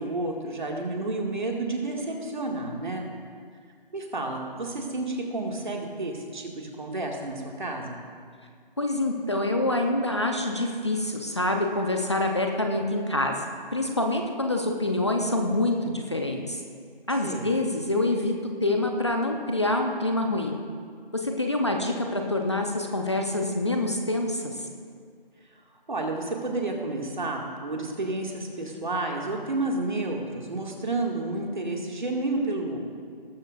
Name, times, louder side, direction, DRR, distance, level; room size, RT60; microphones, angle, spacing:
voice 1, 0.0-3.0 3.9-8.0 17.2-17.5 25.9-32.8, right 2 dB, 55° right, 0 dB, 2.2 m, -30 dB
voice 2, 8.8-13.4 13.7-16.6 17.1-20.6 21.1-24.6, left 2 dB, 30° left, 3 dB, 0.8 m, -26 dB
20.0 x 13.0 x 2.6 m, 2.1 s
figure-of-eight pair, 170°, 29 cm